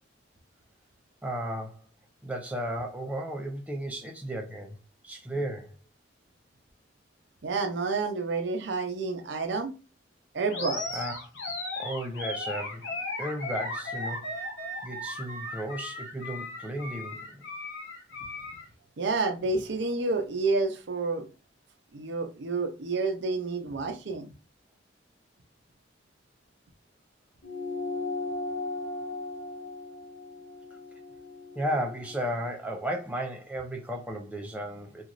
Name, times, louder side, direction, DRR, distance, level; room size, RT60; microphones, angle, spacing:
voice 1, 1.2-1.8 2.2-4.8 5.0-5.8 10.9-11.2 11.8-12.9 13.2-14.4 14.8-17.4 31.6-35.1, right 1 dB, 10° right, 0.4 m, -34 dB
voice 2, 7.4-9.7 10.3-11.0 19.0-21.3 21.9-24.3, right 3 dB, 70° right, 0.6 m, -29 dB
Animal, 10.5-18.7, left 2 dB, 80° left, 0.8 m, -36 dB
sound 1, 27.4-32.2, left 3 dB, 60° left, 1.4 m, -37 dB
2.9 x 2.4 x 2.5 m
head